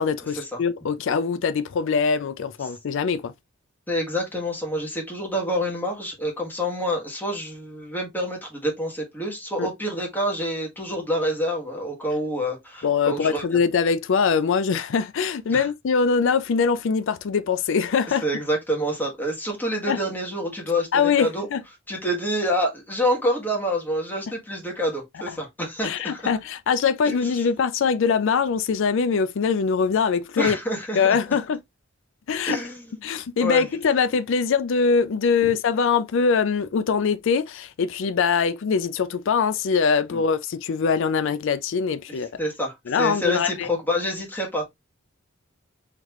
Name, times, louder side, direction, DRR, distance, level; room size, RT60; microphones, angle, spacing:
voice 1, 0.0-3.3 9.6-9.7 12.8-18.2 19.9-20.0 20.9-21.6 25.3-25.4 25.8-30.6 30.9-31.6 32.3-32.6 33.0-42.3 42.9-43.7, left 5 dB, 65° left, 0.4 m, -23 dB
voice 2, 3.9-13.4 15.5-15.7 18.2-21.5 21.9-26.2 27.0-27.2 30.4-31.2 32.5-32.9 33.4-33.6 35.4-35.5 40.1-40.2 42.4-44.6, equal, 10° left, 1.5 m, -27 dB
4.1 x 3.1 x 2.9 m
head